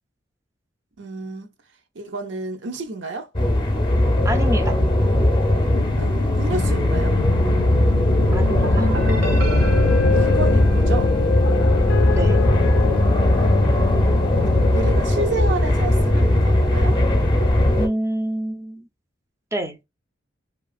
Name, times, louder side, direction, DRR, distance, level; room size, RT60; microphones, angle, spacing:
voice 1, 1.0-1.5 2.0-3.3 6.0-7.2 10.1-11.1 13.7-17.0, right 3 dB, 70° right, 0.6 m, -30 dB
sound 1, 3.3-17.9, left 1 dB, 25° left, 0.7 m, -18 dB
voice 2, 4.2-4.8 8.3-8.9 12.1-12.4 17.7-18.8 19.5-19.8, right 1 dB, 15° right, 0.5 m, -27 dB
sound 2, 5.7-15.0, left 6 dB, 85° left, 0.3 m, -27 dB
sound 3, 8.3-12.1, equal, 85° right, 1.0 m, -28 dB
2.8 x 2.3 x 2.4 m
head